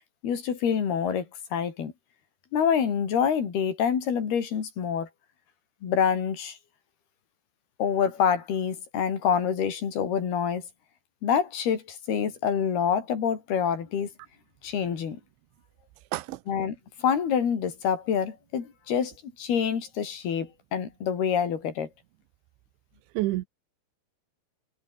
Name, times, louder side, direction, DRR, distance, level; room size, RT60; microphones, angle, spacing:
voice 1, 0.2-1.3 1.5-1.9 2.5-5.1 5.8-6.6 7.8-10.6 11.2-14.1 14.6-15.2 16.5-19.1 19.4-21.9, left 7 dB, 55° left, 5.5 m, -26 dB
voice 2, 16.1-16.4 23.2-23.5, right 18 dB, 80° right, 3.2 m, -28 dB
omnidirectional pair, 5.6 m